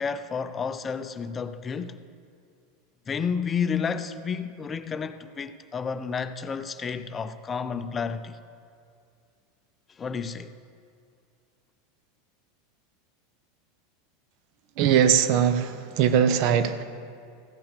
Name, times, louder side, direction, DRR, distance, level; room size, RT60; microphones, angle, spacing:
voice 1, 0.0-2.0 3.1-8.4 10.0-10.5, left 6 dB, 25° left, 0.5 m, -31 dB
voice 2, 14.8-16.8, right 8 dB, 55° right, 0.6 m, -21 dB
14.5 x 5.8 x 6.7 m
hypercardioid pair, 90°, 0 cm